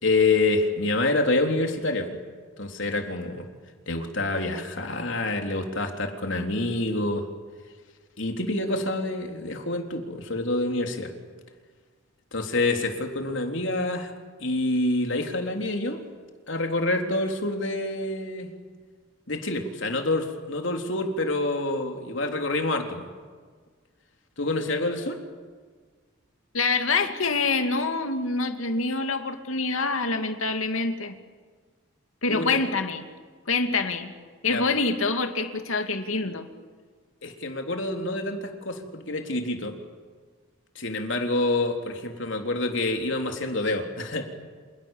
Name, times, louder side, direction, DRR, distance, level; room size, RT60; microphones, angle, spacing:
voice 1, 0.0-2.2 2.6-3.4 3.9-7.3 8.2-11.1 12.3-14.1 14.4-16.0 16.5-18.5 19.3-23.1 24.4-25.2 32.3-32.6 34.4-34.7 37.2-39.8 40.8-44.3, left 2 dB, 65° left, 4 dB, 3.6 m, -27 dB
voice 2, 26.5-31.1 32.2-33.0 33.5-34.1 34.4-36.5, left 3 dB, 85° left, 6 dB, 2.6 m, -26 dB
29.0 x 28.0 x 7.4 m, 1.5 s
head